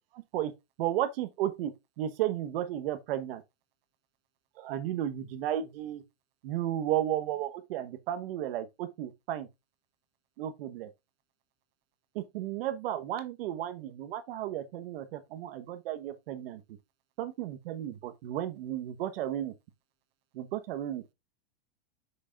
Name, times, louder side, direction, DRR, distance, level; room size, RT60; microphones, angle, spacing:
voice 1, 0.1-0.5 0.8-3.4 4.6-6.0 6.4-9.5 10.4-10.9 12.1-16.6 17.2-19.5 20.3-21.0, right 12 dB, 60° right, 1.3 m, -33 dB
7.2 x 6.5 x 2.4 m
supercardioid pair, 140°, 32 cm